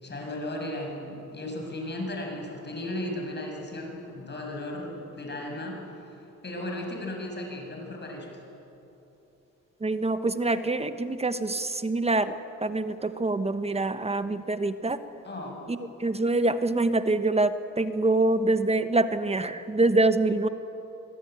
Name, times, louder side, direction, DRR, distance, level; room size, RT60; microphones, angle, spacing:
voice 1, 0.0-6.1 6.4-8.3 15.2-15.6, left 1 dB, 35° left, 1 dB, 7.1 m, -35 dB
voice 2, 9.8-12.4 12.6-15.0 15.7-20.5, right 2 dB, 20° right, 11 dB, 1.1 m, -25 dB
26.0 x 17.5 x 9.4 m, 3.0 s
cardioid pair, 90°, 30 cm